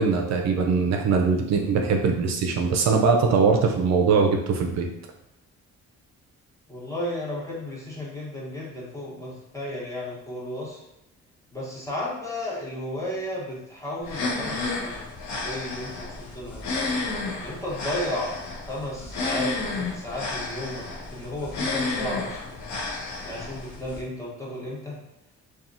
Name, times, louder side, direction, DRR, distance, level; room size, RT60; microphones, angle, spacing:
voice 1, 0.0-4.9, right 5 dB, 60° right, 3 dB, 0.4 m, -21 dB
voice 2, 6.7-10.8 11.5-16.7 17.3-18.4 18.7-22.8 23.2-25.0, left 1 dB, 10° left, -5 dB, 0.9 m, -34 dB
sound 1, 14.0-24.0, left 3 dB, 70° left, 0.6 m, -31 dB
2.8 x 2.2 x 2.5 m, 0.84 s
cardioid pair, 90°, 30 cm